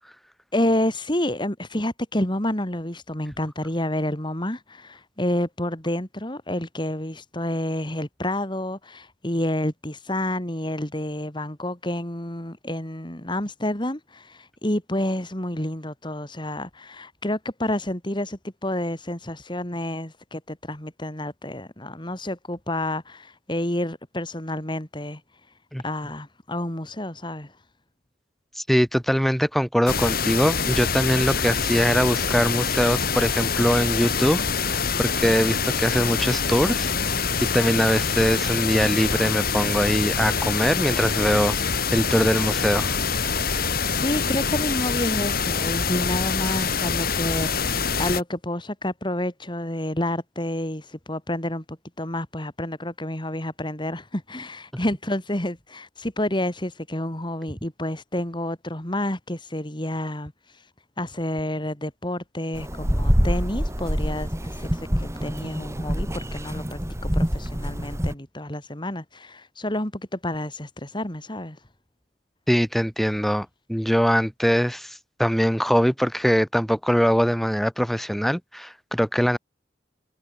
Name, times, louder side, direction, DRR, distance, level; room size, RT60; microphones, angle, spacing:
voice 1, 0.5-25.2 25.8-27.5 43.9-60.6 61.0-71.6, left 1 dB, 25° left, 3.3 m, -29 dB
voice 2, 28.6-41.6 41.9-43.0 72.5-79.4, equal, ahead, 4.2 m, -22 dB
sound 1, 29.9-48.2, left 5 dB, 55° left, 4.2 m, -25 dB
sound 2, 62.5-68.1, equal, 15° right, 4.7 m, -26 dB
head